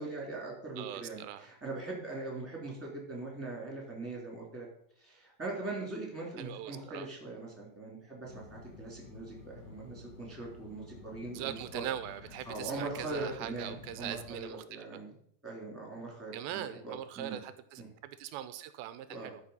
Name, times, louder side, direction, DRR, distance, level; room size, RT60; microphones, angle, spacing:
voice 1, 0.0-4.7 5.0-11.8 12.4-15.1 15.4-17.4 17.8-17.9 19.1-19.4, right 2 dB, 5° right, -2 dB, 2.4 m, -41 dB
voice 2, 0.8-1.5 6.4-7.1 11.3-14.8 16.3-19.4, right 11 dB, 85° right, 12 dB, 2.5 m, -41 dB
sound 1, 8.2-14.4, left 4 dB, 60° left, 4.0 m, -52 dB
12.0 x 5.1 x 5.6 m, 0.67 s
omnidirectional pair, 4.2 m